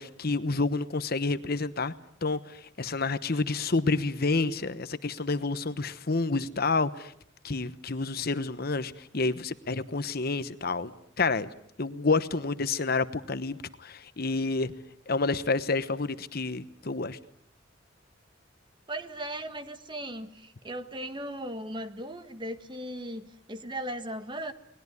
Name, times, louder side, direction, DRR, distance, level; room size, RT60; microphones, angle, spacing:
voice 1, 0.0-1.9 2.2-7.1 7.4-10.9 11.2-11.5 11.8-14.7 15.1-17.2, left 3 dB, 50° left, 13 dB, 1.1 m, -29 dB
voice 2, 18.9-24.5, right 1 dB, 25° right, 9 dB, 1.6 m, -37 dB
29.0 x 20.5 x 9.7 m, 0.72 s
head